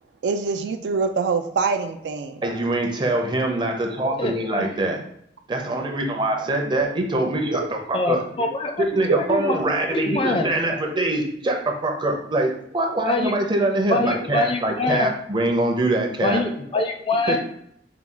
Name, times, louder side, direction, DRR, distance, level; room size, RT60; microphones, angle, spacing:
voice 1, 0.2-2.4 4.0-4.1 6.4-6.5 9.1-9.2, right 4 dB, 75° right, 7 dB, 0.4 m, -24 dB
voice 2, 2.4-5.0 5.5-8.5 8.8-16.4 17.3-17.4, right 2 dB, 25° right, 2 dB, 0.6 m, -24 dB
voice 3, 4.2-4.7 7.9-8.8 9.3-9.6 9.9-10.6 13.0-13.3 13.9-15.1 16.2-17.4, left 2 dB, 30° left, 5 dB, 0.5 m, -24 dB
4.6 x 2.3 x 3.7 m, 0.71 s
head